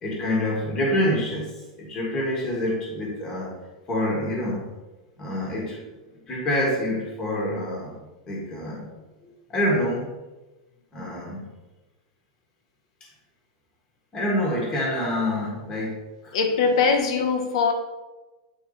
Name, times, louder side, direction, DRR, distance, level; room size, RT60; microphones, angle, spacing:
voice 1, 0.0-1.5 1.8-3.5 3.9-4.6 5.2-5.8 6.3-7.9 8.3-8.9 9.5-10.1 10.9-11.5 14.1-16.0 16.2-16.4, left 1 dB, 20° left, -3 dB, 1.7 m, -26 dB
voice 2, 16.3-17.7, left 5 dB, 65° left, 5 dB, 1.2 m, -21 dB
8.5 x 4.3 x 4.0 m, 1.1 s
supercardioid pair, 170°, 3 cm